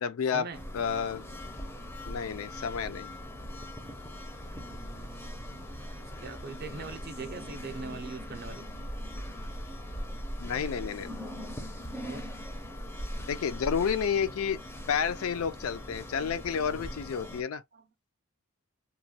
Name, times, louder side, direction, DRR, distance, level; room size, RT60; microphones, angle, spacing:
voice 1, 0.0-0.5 0.7-1.2 2.1-3.1 10.4-11.2 13.3-14.6 14.9-17.6, left 7 dB, 70° left, 0.4 m, -30 dB
sound 1, 0.5-17.4, left 1 dB, 10° left, 0.5 m, -42 dB
voice 2, 4.6-8.7 12.0-12.3 16.7-16.9 17.7-17.9, right 4 dB, 45° right, 0.5 m, -43 dB
Gull seagull, 5.2-14.6, equal, 90° left, 1.0 m, -43 dB
3.0 x 2.2 x 2.7 m
head